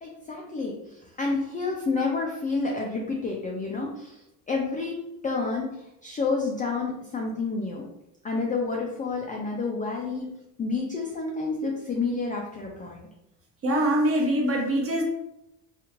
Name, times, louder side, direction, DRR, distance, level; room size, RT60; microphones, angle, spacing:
voice 1, 0.0-4.2 4.5-5.7 6.0-7.8 8.2-13.1, left 3 dB, 20° left, -1 dB, 0.3 m, -29 dB
voice 2, 13.6-15.0, right 1 dB, 30° right, 0 dB, 0.9 m, -23 dB
2.8 x 2.4 x 2.8 m, 0.84 s
supercardioid pair, 80°, 49 cm